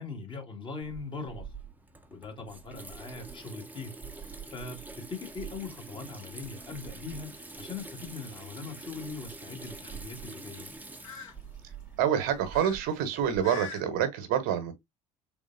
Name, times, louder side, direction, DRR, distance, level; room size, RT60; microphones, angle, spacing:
voice 1, 0.0-1.5 2.1-3.9 4.5-10.7, left 4 dB, 30° left, 1.6 m, -41 dB
Water tap faucet / Sink (filling or washing), 0.8-13.5, right 4 dB, 10° right, 0.8 m, -45 dB
sound 1, 4.0-13.8, left 5 dB, 70° left, 1.4 m, -49 dB
voice 2, 12.0-14.7, right 9 dB, 60° right, 1.0 m, -27 dB
3.6 x 3.4 x 2.6 m
figure-of-eight pair, 60°, 17 cm